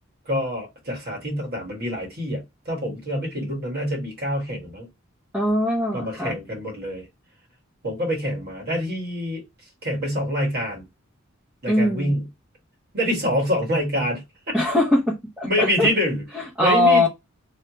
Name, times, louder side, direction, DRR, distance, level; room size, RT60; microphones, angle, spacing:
voice 1, 0.2-4.9 5.9-7.1 7.8-9.4 9.8-10.8 11.6-12.2 12.9-14.2 15.4-17.1, equal, 50° right, 1.6 m, -26 dB
voice 2, 5.3-6.4 11.7-12.1 14.5-15.9 16.6-17.1, left 1 dB, 5° right, 0.8 m, -21 dB
3.3 x 2.3 x 2.9 m
head